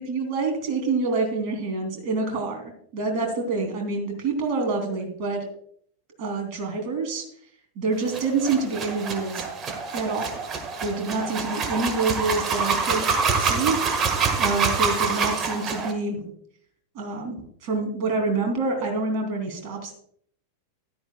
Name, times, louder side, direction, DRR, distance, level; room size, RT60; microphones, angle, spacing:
voice 1, 0.0-5.5 6.2-7.2 7.8-9.5 9.9-10.4 10.8-13.1 13.4-13.8 14.4-16.3 16.9-19.9, right 3 dB, 45° right, 3 dB, 2.7 m, -27 dB
sound 1, 8.0-15.9, right 5 dB, 30° right, 1.5 m, -26 dB
14.0 x 11.0 x 2.3 m, 0.64 s
figure-of-eight pair, 90°, 0 cm